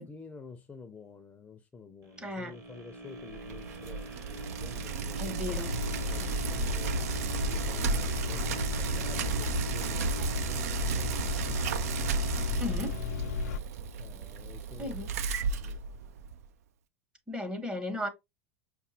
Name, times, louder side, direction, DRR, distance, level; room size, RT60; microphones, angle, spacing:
voice 1, 0.0-7.0 7.3-11.4 12.5-12.9 14.0-15.1 15.6-15.8, left 4 dB, 15° left, 0.5 m, -50 dB
sound 1, 2.0-14.1 14.6-14.7, right 1 dB, 35° right, 1.1 m, -45 dB
voice 2, 2.2-2.5 5.2-5.7 12.6-12.9 14.8-15.1 17.3-18.1, left 1 dB, 10° right, 0.8 m, -35 dB
Bicycle, 3.3-16.4, right 6 dB, 80° right, 0.4 m, -34 dB
sound 2, 5.5-13.6, left 5 dB, 90° left, 0.4 m, -35 dB
5.2 x 2.3 x 2.6 m
hypercardioid pair, 110°, 8 cm